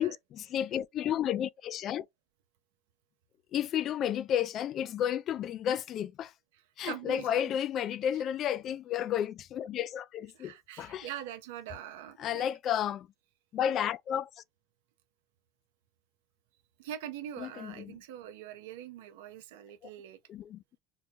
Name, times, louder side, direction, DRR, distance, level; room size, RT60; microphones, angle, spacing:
voice 1, 0.0-2.1 3.5-6.3 6.8-11.1 12.2-13.1 13.5-14.4 17.4-18.0 20.3-20.6, left 10 dB, 50° left, 0.3 m, -32 dB
voice 2, 6.5-7.5 10.3-12.5 16.8-20.2, right 11 dB, 80° right, 0.6 m, -43 dB
3.8 x 2.2 x 2.7 m
supercardioid pair, 95°, 0 cm